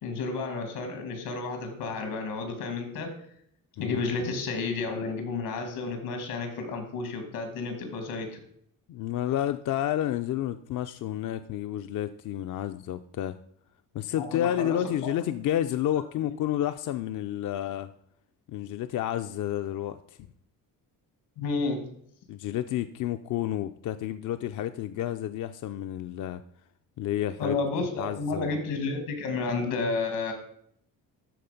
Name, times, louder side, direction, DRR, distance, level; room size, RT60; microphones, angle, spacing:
voice 1, 0.0-3.1 3.8-8.4 14.2-15.1 21.4-21.8 27.4-30.3, left 3 dB, 85° left, 6 dB, 2.5 m, -31 dB
voice 2, 8.9-13.4 13.9-17.9 18.5-20.3 22.3-26.4 27.0-27.6 28.0-28.5, left 12 dB, 55° left, 9 dB, 0.5 m, -30 dB
12.5 x 4.2 x 5.2 m, 0.66 s
cardioid pair, 120°, 36 cm